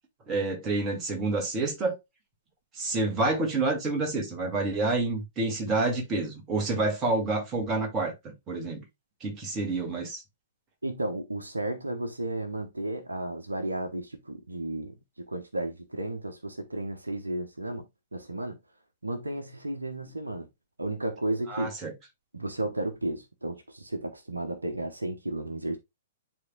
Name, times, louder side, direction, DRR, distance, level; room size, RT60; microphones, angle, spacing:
voice 1, 0.3-2.0 2.7-8.8 9.2-10.2 21.5-21.9, right 3 dB, 25° right, 2.2 m, -28 dB
voice 2, 10.8-15.0 15.3-17.9 18.1-18.6 19.0-20.5 20.8-21.7 22.3-25.8, right 1 dB, 80° right, 1.0 m, -33 dB
11.0 x 3.7 x 2.3 m
figure-of-eight pair, 110°, 0 cm